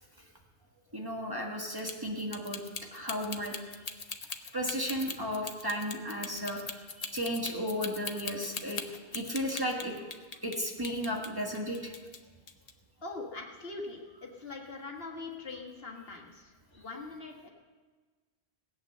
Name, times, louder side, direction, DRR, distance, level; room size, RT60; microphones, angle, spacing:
voice 1, 0.9-2.6 2.9-3.5 4.5-6.6 7.0-8.8 9.1-9.9 10.4-11.9, equal, 20° right, -1 dB, 1.7 m, -34 dB
sound 1, 1.8-10.6 10.8-12.2 12.5-12.7, left 4 dB, 40° left, 0.9 m, -40 dB
voice 2, 13.0-17.5, left 3 dB, 65° left, 0 dB, 1.9 m, -42 dB
17.0 x 9.0 x 6.6 m, 1.4 s
omnidirectional pair, 1.1 m